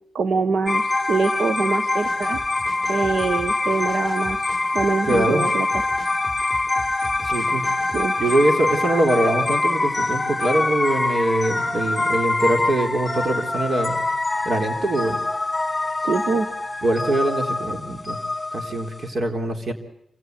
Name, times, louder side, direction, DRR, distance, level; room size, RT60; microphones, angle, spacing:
voice 1, 0.1-2.4 2.9-4.5 4.7-5.7 7.9-8.1 16.0-16.5, right 4 dB, 75° right, 9 dB, 1.4 m, -24 dB
sound 1, 0.7-19.0, left 2 dB, 20° left, 2.2 m, -24 dB
sound 2, 1.9-8.4, equal, 10° right, 4.7 m, -41 dB
voice 2, 5.1-5.5 7.2-7.6 8.2-14.0 14.5-15.2 16.8-18.2 18.5-19.7, right 1 dB, 55° right, 5 dB, 3.9 m, -23 dB
27.5 x 17.0 x 9.4 m, 0.78 s
wide cardioid pair, 105°, 0 cm